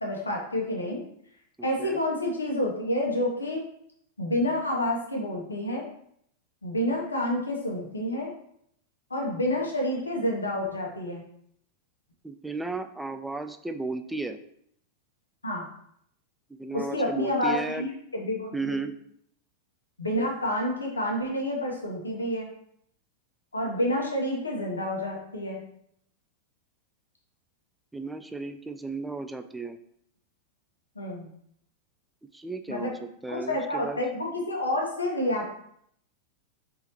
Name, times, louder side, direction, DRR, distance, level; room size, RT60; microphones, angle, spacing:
voice 1, 0.0-1.0 1.6-3.6 4.2-5.8 6.6-8.3 9.1-11.2 15.4-15.6 16.7-18.9 20.0-22.5 23.5-25.6 30.9-31.3 32.7-32.9 33.3-35.5, left 1 dB, 80° left, -1 dB, 1.0 m, -29 dB
voice 2, 1.6-2.0 12.2-14.4 16.5-17.9 18.5-18.9 27.9-29.8 32.3-34.0, right 3 dB, 5° right, 9 dB, 0.3 m, -34 dB
4.3 x 3.7 x 2.9 m, 0.69 s
figure-of-eight pair, 90°, 0 cm